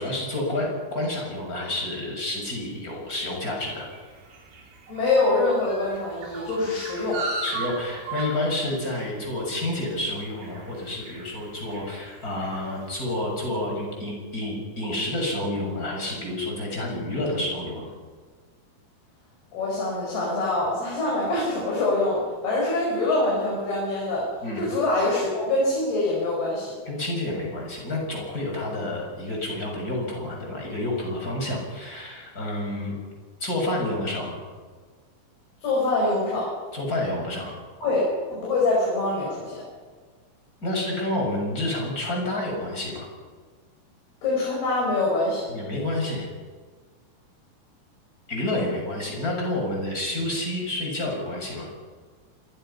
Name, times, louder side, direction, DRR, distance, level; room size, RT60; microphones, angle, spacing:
voice 1, 0.0-3.9 7.4-17.9 24.4-24.6 26.9-33.0 33.4-34.4 36.7-37.5 40.6-43.1 45.5-46.3 48.3-51.7, left 1 dB, 20° left, -1 dB, 7.2 m, -29 dB
sound 1, 2.9-13.5, right 3 dB, 85° right, 5.7 m, -38 dB
voice 2, 4.9-7.2 19.5-24.3 24.6-26.7 35.6-36.5 37.8-39.6 44.2-45.4, left 2 dB, 90° left, -4 dB, 7.7 m, -24 dB
26.0 x 22.5 x 5.8 m, 1.5 s
omnidirectional pair, 4.4 m